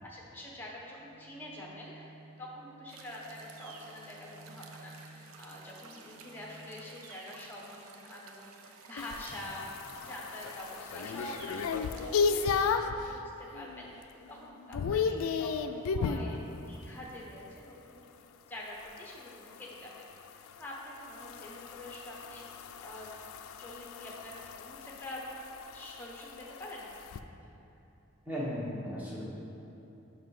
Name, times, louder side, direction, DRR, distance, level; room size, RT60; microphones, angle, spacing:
voice 1, 0.0-2.1 2.4-18.0 18.5-20.1 20.6-22.5 22.8-25.3 25.7-26.9, left 1 dB, 10° left, -3 dB, 0.9 m, -46 dB
sound 1, 0.7-6.7, right 2 dB, 60° right, 0.9 m, -55 dB
sound 2, 2.9-12.8, right 4 dB, 85° right, 0.6 m, -53 dB
sound 3, 9.0-13.0 13.5-13.9 14.2-16.3 18.8-27.2, left 5 dB, 80° left, 0.3 m, -35 dB
voice 2, 28.3-29.2, equal, 5° right, -7 dB, 1.1 m, -36 dB
5.7 x 5.6 x 4.8 m, 2.9 s
head